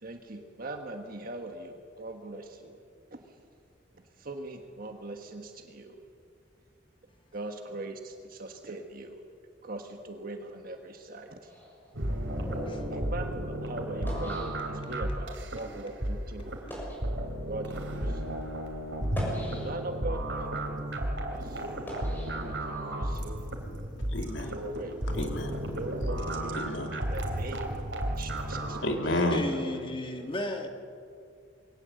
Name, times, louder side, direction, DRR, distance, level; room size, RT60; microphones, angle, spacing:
voice 1, 0.0-2.8 3.1-3.2 4.2-6.0 7.3-9.2 9.6-11.5 12.9-16.5 17.5-18.3 19.6-21.8 22.4-23.4 24.5-24.9 25.7-26.6 27.1-28.8 29.6-29.7, right 2 dB, 50° right, 1.5 m, -41 dB
sound 1, 11.5-15.2 15.9-16.0 16.5-17.1 17.9-18.0 18.9-20.0 20.6-23.1, equal, 10° left, 6.7 m, -41 dB
sound 2, 11.9-28.8, right 1 dB, 75° right, 3.3 m, -33 dB
sound 3, 16.8-17.0 17.7-18.0 18.7-18.9 20.6-20.9 22.5-23.0, equal, 5° right, 1.9 m, -47 dB
voice 2, 24.1-24.6 25.1-25.6 26.5-27.0 28.8-29.4, left 1 dB, 80° left, 2.6 m, -30 dB
voice 3, 29.3-30.7, left 1 dB, 30° left, 1.5 m, -34 dB
22.5 x 17.5 x 7.8 m
head